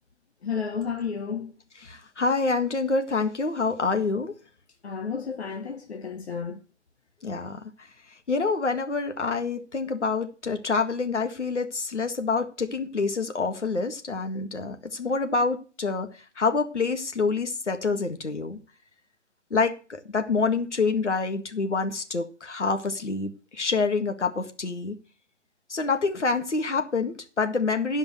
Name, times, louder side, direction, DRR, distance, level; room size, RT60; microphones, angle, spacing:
voice 1, 0.4-1.5 4.8-6.6, left 6 dB, 65° left, 1.3 m, -32 dB
voice 2, 1.8-4.3 7.2-7.7 8.3-18.6 19.5-25.0 25.7-28.0, left 4 dB, 80° left, 1.9 m, -27 dB
12.0 x 5.3 x 7.9 m
figure-of-eight pair, 145°, 35 cm